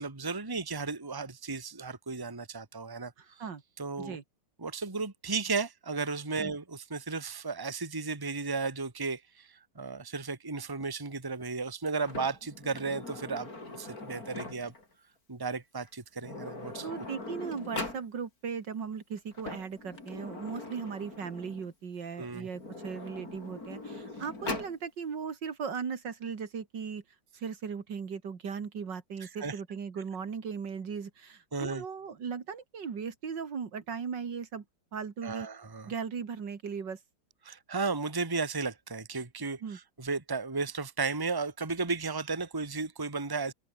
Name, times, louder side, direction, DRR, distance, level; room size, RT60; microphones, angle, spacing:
voice 1, 0.0-3.1 3.8-4.2 4.6-14.7 15.3-16.9 22.2-22.5 29.2-29.6 31.5-31.8 35.2-35.9 37.4-43.5, right 4 dB, 10° right, 1.7 m, -34 dB
voice 2, 3.2-3.6 4.0-4.2 6.4-6.5 16.8-27.0 27.3-34.6 34.9-35.5 35.9-37.0 39.6-39.8, right 6 dB, 70° right, 2.7 m, -38 dB
Sliding door, 12.0-14.9 15.8-15.9 16.2-18.1 19.2-21.7 22.5-24.8, left 2 dB, 50° left, 5.8 m, -41 dB
omnidirectional pair, 2.0 m